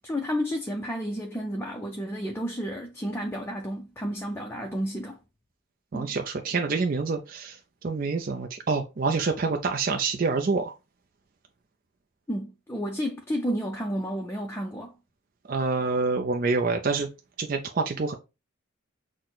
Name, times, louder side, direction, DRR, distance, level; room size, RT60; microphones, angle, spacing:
voice 1, 0.0-5.2 5.9-6.1 12.3-14.9, equal, 10° left, 0.5 m, -31 dB
voice 2, 5.9-10.7 15.5-17.1 17.4-18.2, right 4 dB, 45° right, 0.4 m, -27 dB
6.2 x 2.1 x 3.8 m
head